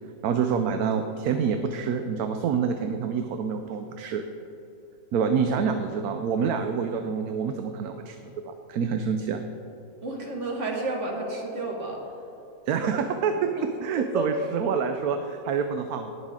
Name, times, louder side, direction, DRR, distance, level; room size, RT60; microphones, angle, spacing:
voice 1, 0.2-4.2 5.1-9.4 12.7-16.1, right 6 dB, 70° right, 7 dB, 1.0 m, -27 dB
voice 2, 10.0-12.0 14.1-14.2, right 2 dB, 45° right, -1 dB, 1.9 m, -30 dB
18.0 x 6.5 x 3.6 m, 3.0 s
omnidirectional pair, 1.8 m